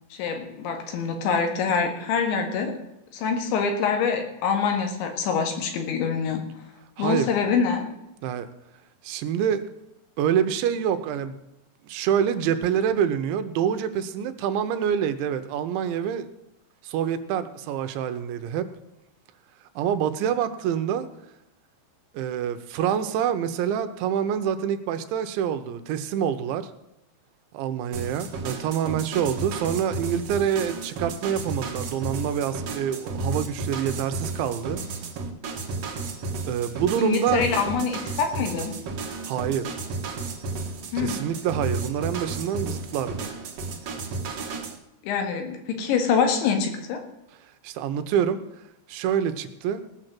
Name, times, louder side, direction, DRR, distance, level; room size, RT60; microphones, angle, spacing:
voice 1, 0.2-2.7 3.1-6.4 7.0-7.9 37.0-38.7 40.9-41.2 45.0-47.0, left 6 dB, 80° left, 5 dB, 4.1 m, -25 dB
voice 2, 7.0-7.3 8.2-8.5 9.0-9.6 10.2-11.4 11.9-16.3 16.8-18.7 19.8-21.1 22.1-26.7 27.5-34.8 36.5-37.5 39.3-39.8 41.0-43.3 47.6-48.4 48.9-49.8, right 8 dB, 85° right, 10 dB, 3.2 m, -26 dB
sound 1, 27.9-44.8, right 3 dB, 55° right, 1.9 m, -33 dB
17.5 x 6.6 x 7.5 m, 0.89 s
omnidirectional pair, 5.2 m